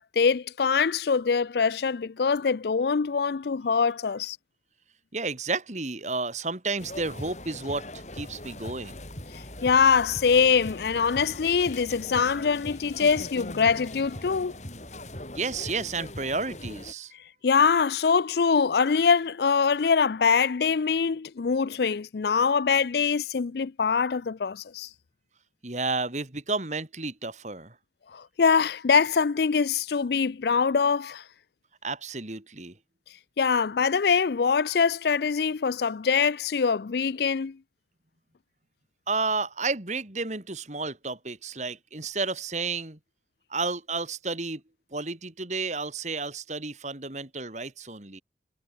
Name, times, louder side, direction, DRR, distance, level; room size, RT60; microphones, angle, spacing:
voice 1, 0.0-4.4 9.6-14.5 17.4-24.9 28.1-31.2 33.4-37.6, left 5 dB, 60° left, 0.4 m, -23 dB
voice 2, 5.1-9.0 15.3-17.1 25.6-27.8 31.8-32.8 39.1-43.0 43.5-44.6 44.9-48.2, right 3 dB, 40° right, 2.2 m, -31 dB
sound 1, 6.8-16.9, left 1 dB, 40° left, 6.3 m, -40 dB
head